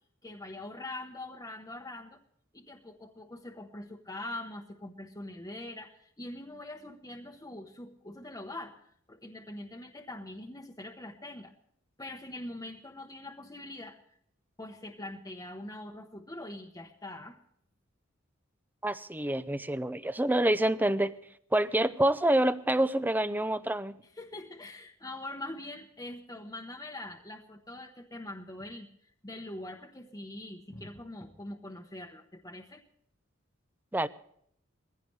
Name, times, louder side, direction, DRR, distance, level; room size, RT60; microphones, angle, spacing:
voice 1, 0.2-2.2 2.5-11.5 12.0-14.0 14.6-17.4 24.0-32.8, left 1 dB, 20° left, 0 dB, 1.1 m, -43 dB
voice 2, 18.8-21.1 21.5-24.0 33.9-34.1, right 1 dB, 10° right, 13 dB, 0.6 m, -27 dB
21.0 x 16.0 x 3.3 m, 0.66 s
head